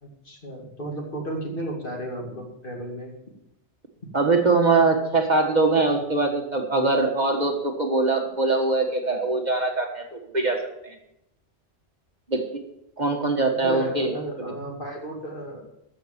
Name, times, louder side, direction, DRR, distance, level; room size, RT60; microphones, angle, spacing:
voice 1, 0.0-3.1 13.6-15.6, right 1 dB, 50° left, 0 dB, 2.6 m, -34 dB
voice 2, 4.1-10.9 12.3-12.4 13.0-14.1, right 3 dB, 40° right, 3 dB, 1.6 m, -22 dB
13.5 x 6.6 x 7.2 m, 0.83 s
omnidirectional pair, 1.2 m